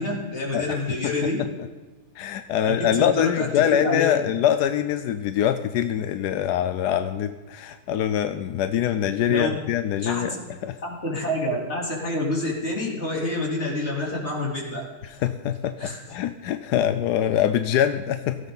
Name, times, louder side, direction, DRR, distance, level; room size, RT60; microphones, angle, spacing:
voice 1, 0.0-1.4 2.6-3.5 3.8-4.1 9.3-9.5 10.0-10.4 10.8-14.8 15.8-16.0, left 1 dB, 40° left, -3 dB, 3.7 m, -27 dB
voice 2, 0.5-1.5 2.2-10.4 10.6-10.8 15.0-18.4, left 10 dB, 90° left, 9 dB, 1.2 m, -24 dB
17.0 x 16.0 x 4.0 m, 1.3 s
omnidirectional pair, 1.7 m